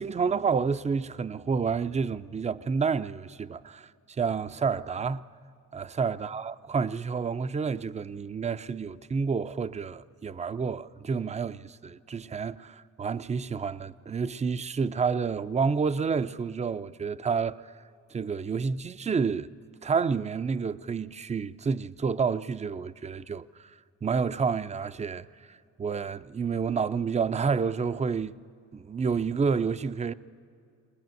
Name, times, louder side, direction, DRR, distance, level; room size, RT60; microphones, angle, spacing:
voice 1, 0.0-5.2 5.7-17.7 18.1-19.5 19.8-23.5 24.0-28.4 28.7-30.1, right 5 dB, 20° right, 0.5 m, -29 dB
21.0 x 21.0 x 9.2 m
cardioid pair, 90°, 30 cm